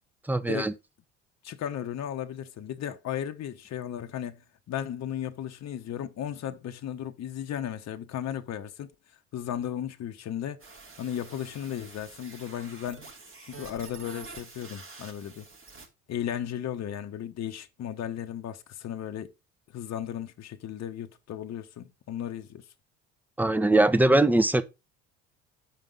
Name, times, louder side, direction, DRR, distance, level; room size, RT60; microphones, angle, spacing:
voice 1, 0.3-0.7 23.4-24.6, right 2 dB, 5° right, 0.8 m, -21 dB
voice 2, 1.4-8.9 9.3-10.6 11.0-13.1 13.4-15.5 16.1-19.3 19.7-22.6, left 10 dB, 45° left, 1.0 m, -35 dB
sound 1, 10.6-15.9, right 4 dB, 35° right, 2.9 m, -47 dB
7.5 x 5.4 x 5.2 m
hypercardioid pair, 60°, 37 cm